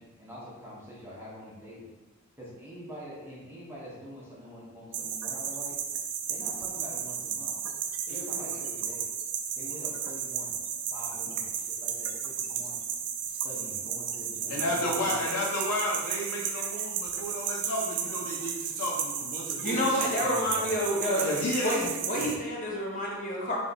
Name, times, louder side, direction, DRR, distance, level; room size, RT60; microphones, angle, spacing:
voice 1, 0.0-1.9 2.4-5.7 6.3-7.5 8.1-9.1 9.5-10.6 10.9-12.8 13.3-15.2 20.2-20.7, equal, 10° right, -8 dB, 1.0 m, -45 dB
sound 1, 4.9-22.4, right 8 dB, 85° right, 0.4 m, -34 dB
voice 2, 8.1-8.6 19.6-21.3 21.6-23.6, equal, 35° left, -4 dB, 1.0 m, -29 dB
voice 3, 14.5-20.1 21.2-21.9 22.2-22.3, left 1 dB, 90° left, -3 dB, 0.7 m, -32 dB
3.4 x 3.0 x 3.9 m, 1.1 s
head